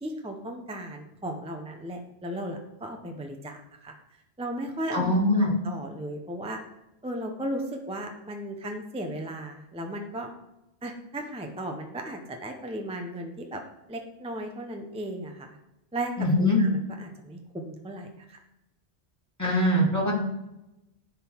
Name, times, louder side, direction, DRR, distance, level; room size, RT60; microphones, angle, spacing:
voice 1, 0.0-3.9 4.4-6.6 7.0-10.3 10.8-13.6 13.9-15.5 15.9-16.1 16.4-18.4, right 1 dB, 5° right, 3 dB, 0.6 m, -36 dB
voice 2, 4.9-5.5 16.2-16.6 19.4-20.1, left 1 dB, 15° left, -4 dB, 1.8 m, -22 dB
10.5 x 3.8 x 4.5 m, 0.93 s
omnidirectional pair, 1.1 m